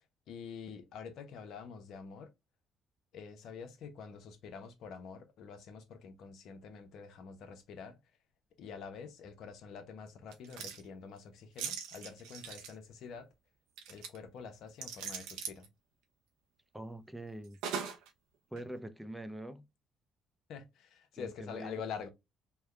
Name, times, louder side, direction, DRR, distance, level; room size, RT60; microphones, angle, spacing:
voice 1, 0.3-2.3 3.1-8.0 8.6-13.3 13.9-15.7 20.5-22.1, left 6 dB, 70° left, 0.8 m, -46 dB
sound 1, 10.3-10.8 11.6-12.7 13.8-14.2 14.8-15.7 17.6-18.1 18.6-18.7, right 7 dB, 90° right, 0.7 m, -40 dB
voice 2, 16.7-17.6 18.5-19.7 21.2-21.8, right 1 dB, 5° right, 0.5 m, -44 dB
3.4 x 2.2 x 3.3 m
supercardioid pair, 80°, 0 cm